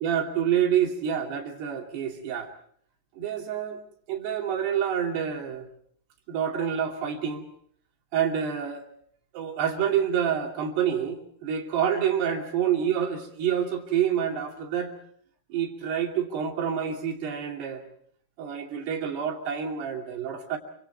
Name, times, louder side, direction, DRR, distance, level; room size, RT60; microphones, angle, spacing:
voice 1, 0.0-2.5 3.2-3.8 4.1-5.7 6.3-7.4 8.1-8.8 9.3-14.9 15.5-17.8 18.4-20.6, right 9 dB, 90° right, 2 dB, 4.8 m, -27 dB
28.5 x 25.0 x 4.6 m, 0.63 s
omnidirectional pair, 4.6 m